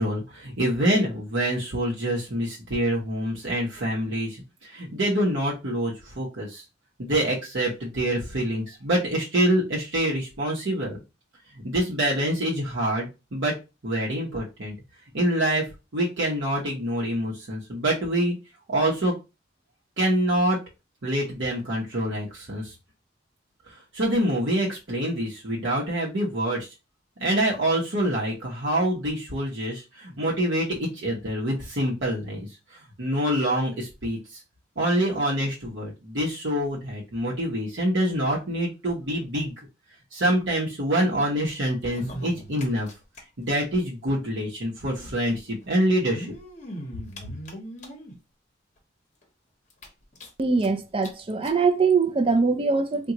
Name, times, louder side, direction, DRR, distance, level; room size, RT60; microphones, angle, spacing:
voice 1, 0.0-6.6 7.0-11.0 11.6-13.5 13.8-14.7 15.1-15.6 15.9-18.3 18.7-19.1 20.0-20.6 21.0-22.7 23.9-26.7 27.2-32.5 33.0-34.2 34.8-39.5 40.1-42.9 43.4-46.3, right 1 dB, 65° right, 0.8 m, -26 dB
sound 1, 41.8-43.2 43.5-43.6 43.8-43.9 44.9-45.0 45.9-48.2 48.8-48.9 49.2-49.3 49.7-50.7 51.0-51.1 51.4-51.6 52.4-52.5, equal, 40° left, 0.8 m, -39 dB
voice 2, 50.4-53.1, right 4 dB, 30° right, 0.4 m, -22 dB
3.7 x 2.2 x 2.8 m
head